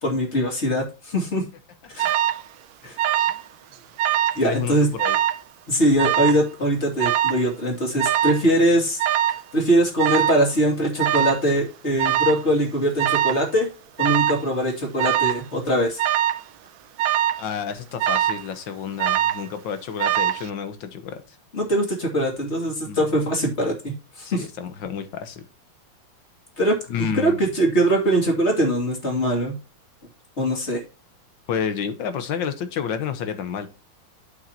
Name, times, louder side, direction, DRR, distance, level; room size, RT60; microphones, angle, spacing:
voice 1, 0.0-1.4 1.9-2.1 2.8-3.0 4.4-4.9 5.7-9.0 9.5-13.7 14.0-16.0 21.5-24.5 26.6-29.6 30.4-30.8, right 1 dB, 30° left, 2.7 m, -22 dB
Alarm, 2.0-2.4 3.0-3.5 3.7-4.4 5.0-5.4 6.0-6.4 7.0-7.4 8.0-8.4 9.0-9.4 10.0-10.4 11.0-11.4 12.0-12.4 13.0-13.4 14.0-14.4 15.0-15.4 16.0-16.4 17.0-17.4 18.0-18.5 19.0-19.5 20.0-20.5, right 11 dB, 70° right, 1.3 m, -22 dB
voice 2, 4.4-5.2 17.4-21.2 22.9-23.0 24.2-25.4 26.9-27.4 31.5-33.7, left 7 dB, 65° left, 1.7 m, -30 dB
9.1 x 7.3 x 2.9 m
omnidirectional pair, 2.3 m